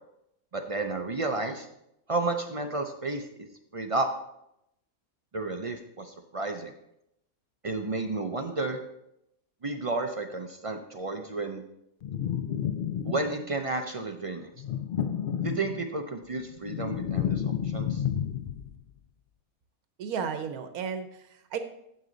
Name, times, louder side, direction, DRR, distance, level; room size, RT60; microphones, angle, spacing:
voice 1, 0.5-1.7 2.1-3.3 3.7-4.1 5.3-6.7 7.6-8.8 9.6-11.6 13.0-14.5 15.4-18.0, right 3 dB, 55° right, 5 dB, 0.3 m, -32 dB
sound 1, 12.0-13.6 14.6-16.0 16.4-18.8, left 9 dB, 80° left, 0.4 m, -31 dB
voice 2, 20.0-21.6, right 6 dB, 85° right, 8 dB, 1.3 m, -34 dB
9.4 x 7.4 x 3.9 m, 0.80 s
omnidirectional pair, 1.5 m